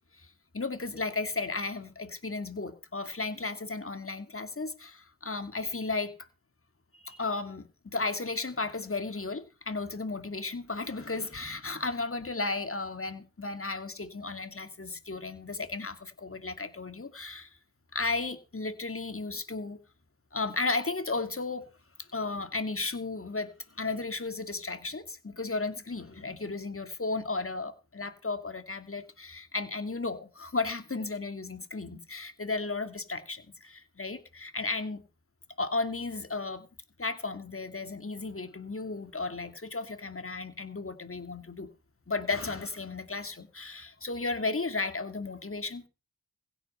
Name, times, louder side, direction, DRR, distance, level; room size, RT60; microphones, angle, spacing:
voice 1, 0.5-6.1 6.9-17.5 17.9-19.8 20.3-21.7 22.1-35.0 35.6-36.7 37.0-41.7 42.1-45.9, left 3 dB, 45° left, 2.4 m, -34 dB
16.0 x 9.1 x 5.5 m
cardioid pair, 50°, 32 cm